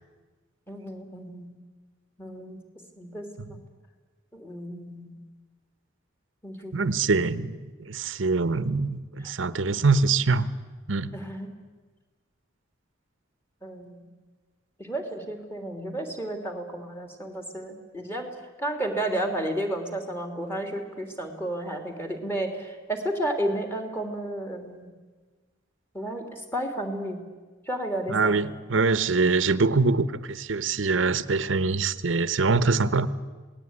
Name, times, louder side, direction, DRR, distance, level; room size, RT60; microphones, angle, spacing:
voice 1, 0.7-1.5 2.2-2.6 3.0-3.6 4.3-5.2 6.4-6.9 9.2-9.3 11.1-11.5 13.6-14.0 14.8-18.3 18.6-24.9 25.9-27.2 27.7-28.5, right 1 dB, 10° left, 5 dB, 3.3 m, -32 dB
voice 2, 6.7-10.5 10.9-11.1 28.1-33.1, right 4 dB, 85° right, 15 dB, 1.0 m, -24 dB
27.0 x 19.0 x 9.8 m, 1.3 s
head